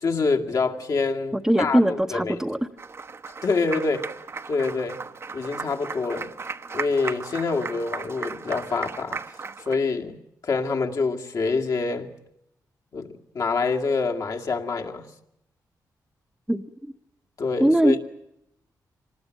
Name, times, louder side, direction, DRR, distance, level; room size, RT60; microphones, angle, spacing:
voice 1, 0.0-2.4 3.4-4.1 4.5-5.0 5.3-6.3 6.7-9.2 9.6-10.2 10.4-12.1 12.9-15.1 17.4-18.0, left 4 dB, 55° left, 2.1 m, -26 dB
voice 2, 1.3-2.6 16.5-16.6 17.6-18.0, right 1 dB, 5° right, 1.0 m, -21 dB
Applause, 2.8-9.8, right 4 dB, 40° right, 1.0 m, -36 dB
25.5 x 19.5 x 9.2 m
cardioid pair, 105°, 7 cm